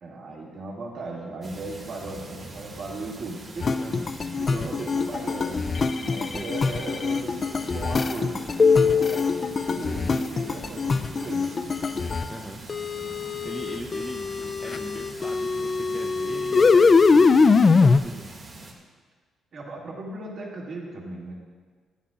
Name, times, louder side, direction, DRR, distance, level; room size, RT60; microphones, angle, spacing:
voice 1, 0.0-4.0 4.4-5.7 6.0-11.6 19.5-21.3, right 2 dB, 60° right, -3 dB, 2.0 m, -37 dB
sound 1, 1.4-18.7, right 2 dB, 40° right, 1.7 m, -43 dB
sound 2, 3.6-12.3 12.7-18.0, left 4 dB, 35° left, 0.3 m, -22 dB
voice 2, 3.8-4.5 5.9-6.5 12.3-12.6 13.4-18.3, right 1 dB, 10° right, 0 dB, 0.5 m, -40 dB
11.0 x 9.9 x 2.4 m, 1.5 s
cardioid pair, 90°, 0 cm